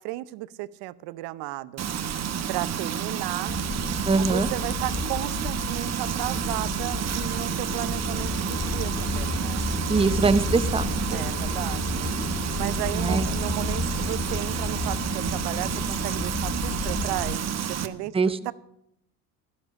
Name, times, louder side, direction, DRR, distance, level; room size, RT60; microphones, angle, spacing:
voice 1, 0.0-1.9 2.5-3.6 4.2-9.7 11.1-12.1 12.6-18.1 18.4-18.5, right 17 dB, 65° right, 17 dB, 0.8 m, -34 dB
Frying (food), 1.8-17.9, right 8 dB, 35° right, 1.1 m, -30 dB
sound 1, 3.5-17.4, left 4 dB, 20° left, 1.0 m, -32 dB
voice 2, 4.0-4.5 9.9-10.9 12.9-13.3 18.1-18.4, right 4 dB, 15° right, 13 dB, 0.7 m, -22 dB
13.0 x 12.0 x 6.0 m, 0.76 s
supercardioid pair, 90°, 44 cm